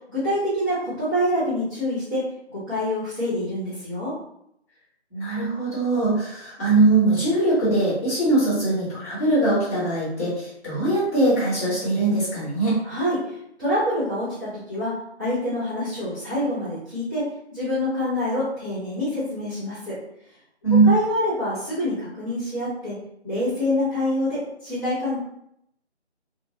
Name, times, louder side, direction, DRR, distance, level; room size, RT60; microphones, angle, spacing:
voice 1, 0.1-2.2 2.5-4.1 12.8-20.0 20.8-23.0 23.2-25.2, left 1 dB, 20° right, -16 dB, 0.6 m, -26 dB
voice 2, 5.1-12.8 20.6-20.9, right 2 dB, 15° left, -13 dB, 0.8 m, -21 dB
2.4 x 2.1 x 2.6 m, 0.76 s
figure-of-eight pair, 155°, 34 cm